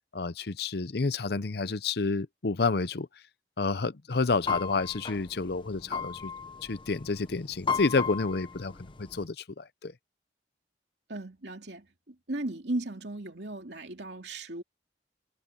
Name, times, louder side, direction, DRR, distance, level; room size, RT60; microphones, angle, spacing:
voice 1, 0.1-3.1 3.6-6.3 6.7-8.7 9.0-9.9, left 4 dB, 60° left, 0.7 m, -29 dB
sound 1, 4.1-9.3, left 6 dB, 25° left, 0.9 m, -36 dB
voice 2, 11.1-14.6, right 2 dB, 65° right, 2.7 m, -36 dB
head